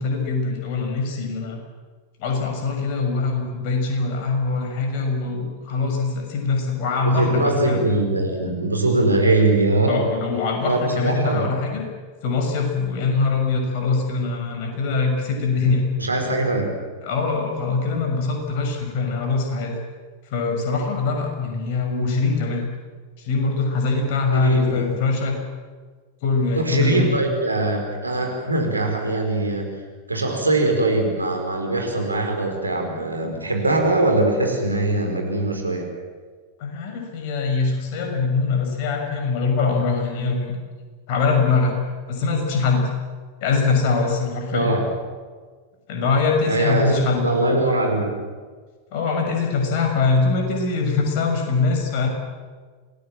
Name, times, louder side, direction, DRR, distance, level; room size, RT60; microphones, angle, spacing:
voice 1, 0.0-1.6 2.2-7.8 9.9-11.8 12.2-15.9 17.0-19.8 20.3-22.6 23.2-25.4 26.2-27.1 36.6-40.6 41.1-41.8 42.1-42.9 43.4-44.8 45.9-47.6 48.9-52.1, left 4 dB, 50° left, 3 dB, 6.3 m, -23 dB
voice 2, 7.0-10.1 10.6-11.5 16.0-16.7 24.3-24.9 26.5-29.8 30.1-35.9 44.5-44.8 46.4-48.1, right 2 dB, 80° right, 3 dB, 4.8 m, -22 dB
27.0 x 19.5 x 7.6 m, 1.5 s
figure-of-eight pair, 90°, 0 cm